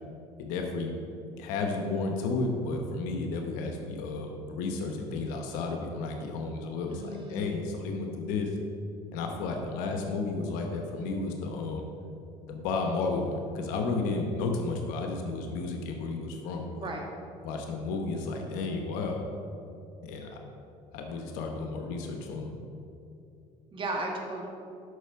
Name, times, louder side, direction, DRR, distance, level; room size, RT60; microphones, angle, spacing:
voice 1, 0.4-0.9 1.4-8.5 9.1-11.8 12.5-16.9 17.4-19.2 20.0-20.4 20.9-22.5, left 3 dB, 90° left, 3 dB, 1.0 m, -32 dB
voice 2, 6.9-7.5 16.7-17.0 23.7-24.5, right 2 dB, 40° right, 1 dB, 1.8 m, -35 dB
8.0 x 6.0 x 5.7 m, 2.6 s
cardioid pair, 95°, 13 cm